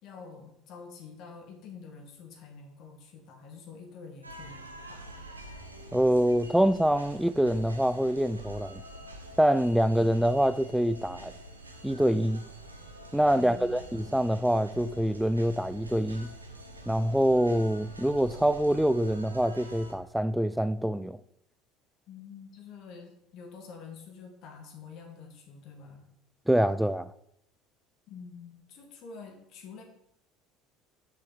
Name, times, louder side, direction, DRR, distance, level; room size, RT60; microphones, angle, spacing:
voice 1, 0.0-5.3 13.3-13.7 22.1-26.1 28.1-29.8, left 5 dB, 50° left, 1.6 m, -47 dB
sound 1, 4.2-19.9, right 1 dB, 85° right, 0.9 m, -46 dB
voice 2, 5.9-8.8 9.4-11.3 11.8-12.4 13.1-16.3 16.9-21.2 26.5-27.1, equal, 5° right, 0.3 m, -25 dB
8.7 x 6.3 x 4.7 m
figure-of-eight pair, 65°, 0 cm